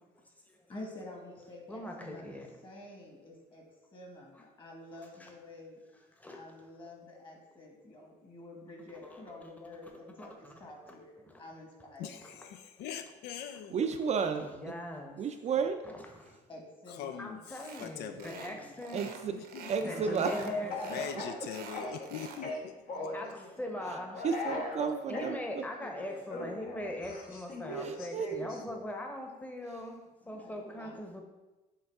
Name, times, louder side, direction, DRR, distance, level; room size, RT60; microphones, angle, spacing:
voice 1, 0.7-3.6 3.9-5.8 6.3-12.2 16.5-17.4 17.8-17.9 18.5-18.8 20.2-21.5 22.9-24.2 25.2-25.4 25.7-26.3 30.2-31.0, left 1 dB, 30° left, 0 dB, 1.6 m, -49 dB
voice 2, 1.7-2.5 5.2-5.3 6.2-6.7 9.0-9.5 9.8-9.9 10.2-10.5 10.8-10.9 11.2-11.4 12.2-12.3 14.4-15.1 15.8-16.4 17.2-19.0 19.9-21.0 23.1-24.3 25.1-30.0 30.3-31.2, left 1 dB, 10° left, 2 dB, 0.9 m, -41 dB
voice 3, 12.0-13.8 16.9-18.6 19.0-19.7 20.9-22.7, left 8 dB, 75° left, 8 dB, 0.4 m, -42 dB
voice 4, 13.7-14.5 15.2-15.8 18.9-19.3 19.7-20.5 23.9-24.0 24.2-25.6 27.8-28.3, right 6 dB, 40° right, 6 dB, 0.4 m, -32 dB
sound 1, 17.6-17.9 18.2-18.5 18.8-19.9 20.1-20.5 20.8-22.4, right 6 dB, 70° right, 0.8 m, -47 dB
Speech / Cough, 19.8-22.1 22.4-23.2 24.1-25.4 26.3-28.6, left 1 dB, 60° left, 1.2 m, -38 dB
7.9 x 3.4 x 3.5 m, 1.1 s
cardioid pair, 110°, 17 cm